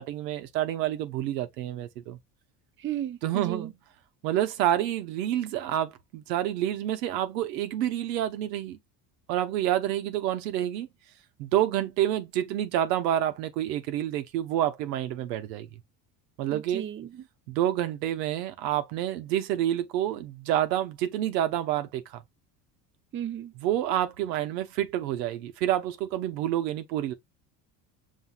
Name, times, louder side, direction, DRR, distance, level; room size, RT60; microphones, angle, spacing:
voice 1, 0.0-2.2 3.2-3.7 4.2-8.8 9.3-10.9 11.4-15.8 16.4-16.8 17.5-22.2 23.6-27.1, right 12 dB, 85° right, 0.8 m, -28 dB
voice 2, 2.8-3.7 16.5-17.2 23.1-23.5, right 11 dB, 25° right, 0.5 m, -34 dB
5.7 x 2.6 x 2.4 m
hypercardioid pair, 75°, 49 cm